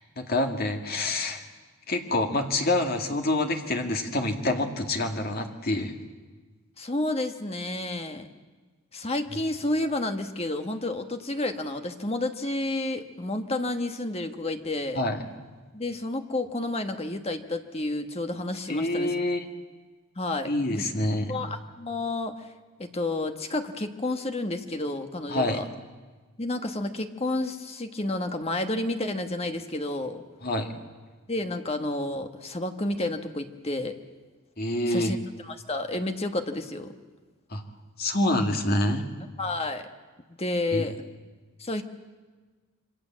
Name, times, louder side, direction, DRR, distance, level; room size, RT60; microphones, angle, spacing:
voice 1, 0.2-1.4 1.9-5.9 15.0-15.2 18.7-19.4 20.5-21.3 25.3-25.6 30.4-30.7 34.6-35.1 37.5-37.6 38.0-39.1 40.7-40.9, left 1 dB, 45° left, 4 dB, 2.2 m, -26 dB
voice 2, 6.8-8.3 8.9-15.0 15.7-19.1 20.1-20.9 21.3-22.4 22.8-25.6 26.4-30.2 31.3-34.0 34.9-35.2 35.4-36.9 39.4-39.9 40.4-40.9 41.6-41.8, left 2 dB, 25° left, 6 dB, 1.4 m, -30 dB
27.0 x 24.0 x 7.6 m, 1.4 s
head